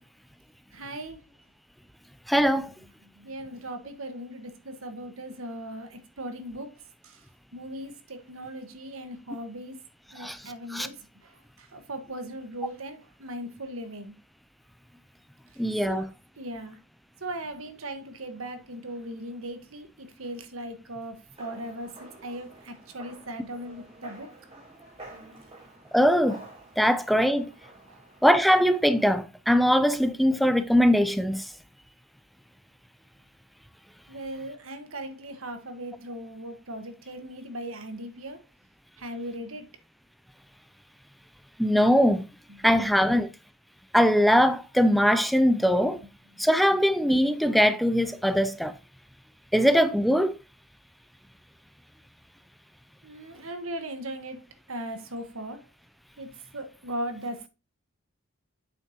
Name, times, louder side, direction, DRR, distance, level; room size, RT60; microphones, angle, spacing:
voice 1, 0.7-1.2 3.2-6.7 7.0-7.2 7.5-9.8 10.1-11.0 11.2-11.3 11.6-14.1 15.9-16.0 16.4-16.8 17.2-24.3 27.9-28.0 34.1-38.4 39.0-39.7 42.5-42.6 43.1-43.2 53.0-54.4 54.7-55.6 56.2-56.3 56.5-57.5, right 1 dB, 85° right, 1.6 m, -38 dB
voice 2, 2.3-2.7 10.2-10.4 10.7-10.9 15.6-16.0 25.9-26.4 26.8-27.5 28.2-31.5 41.6-42.3 42.6-43.3 43.9-46.0 46.4-48.7 49.5-50.3, equal, ahead, 0.4 m, -21 dB
sound 1, 21.3-29.2, right 2 dB, 30° right, 4.5 m, -49 dB
8.5 x 6.7 x 3.0 m
head